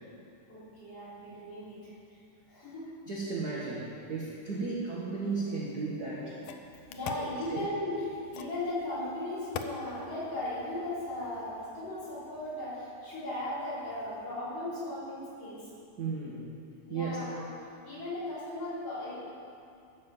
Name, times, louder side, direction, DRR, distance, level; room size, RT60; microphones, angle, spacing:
voice 1, 0.5-2.2 2.5-2.9 4.5-4.6 6.7-15.7 16.9-17.5 17.8-19.2, left 1 dB, 50° left, -10 dB, 4.4 m, -37 dB
voice 2, 3.1-6.4 7.5-7.6 16.0-16.5 16.9-17.2, right 4 dB, 55° right, -5 dB, 1.1 m, -34 dB
sound 1, 5.7-5.8 6.4-7.3 8.3-8.6 9.5-9.8, left 8 dB, 85° left, 1.5 m, -40 dB
13.5 x 5.6 x 7.2 m, 2.5 s
omnidirectional pair, 3.7 m